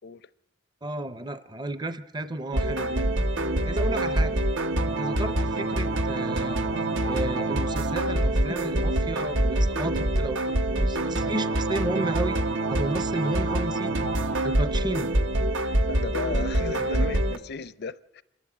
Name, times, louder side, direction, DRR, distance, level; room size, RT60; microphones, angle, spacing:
voice 1, 0.8-3.1 3.5-4.4 5.0-6.7 7.0-12.4 12.7-14.1 14.4-15.1 16.7-17.1, right 2 dB, 25° right, 0.6 m, -33 dB
sound 1, 2.5-17.4, right 1 dB, 80° right, 1.1 m, -25 dB
voice 2, 15.9-18.2, left 4 dB, 60° left, 0.6 m, -35 dB
27.0 x 11.0 x 8.6 m
head